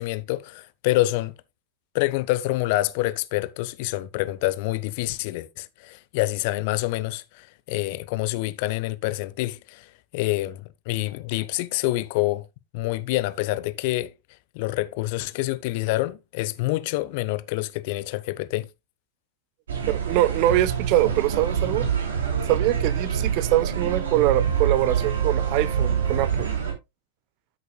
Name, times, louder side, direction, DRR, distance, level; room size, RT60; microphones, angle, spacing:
voice 1, 0.0-1.3 1.9-12.4 12.7-14.1 14.5-18.7, left 18 dB, 50° left, 0.8 m, -27 dB
sound 1, 19.7-26.7, right 7 dB, 65° right, 2.8 m, -26 dB
voice 2, 19.9-21.9 22.5-26.5, right 14 dB, 45° right, 0.8 m, -23 dB
13.0 x 6.7 x 2.3 m
figure-of-eight pair, 90°, 0 cm